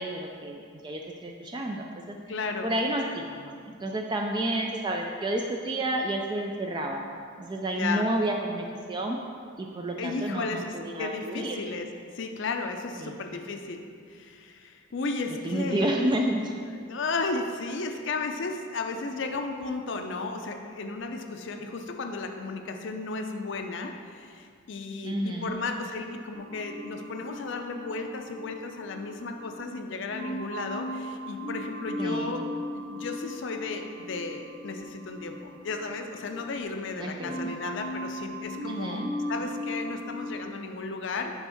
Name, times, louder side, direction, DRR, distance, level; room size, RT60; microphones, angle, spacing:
voice 1, 0.0-2.2 2.6-7.0 7.4-9.2 9.6-11.6 13.0-13.4 15.4-16.7 25.0-25.6 32.0-32.4 37.0-37.5 38.6-39.1, right 1 dB, 20° right, 1 dB, 0.3 m, -30 dB
voice 2, 2.3-2.7 7.7-8.1 10.0-11.9 12.1-13.8 14.1-16.0 16.8-32.4 32.8-35.4 35.6-39.0 39.3-41.3, left 3 dB, 60° left, 5 dB, 0.5 m, -34 dB
sound 1, 26.4-29.6 30.1-36.9 37.2-40.4, equal, 35° right, 0.9 m, -38 dB
7.0 x 3.6 x 5.7 m, 2.2 s
head